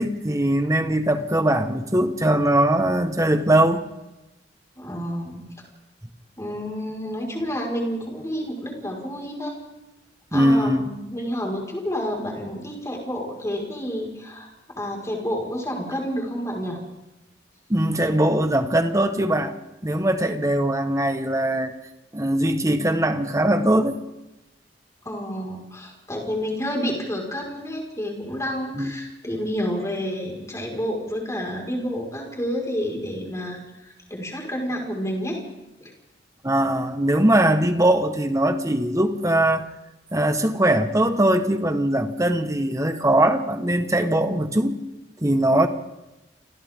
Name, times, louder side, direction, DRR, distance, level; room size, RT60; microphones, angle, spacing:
voice 1, 0.0-3.8 10.3-10.9 17.7-19.5 19.8-21.7 22.1-24.0 28.8-28.9 36.4-39.6 40.1-44.8 45.2-45.7, right 1 dB, 20° right, 7 dB, 1.5 m, -21 dB
voice 2, 4.8-5.5 6.4-9.6 10.3-16.8 25.1-35.4 35.8-35.9, equal, 15° left, 0 dB, 5.3 m, -29 dB
29.5 x 26.0 x 3.8 m, 0.97 s
head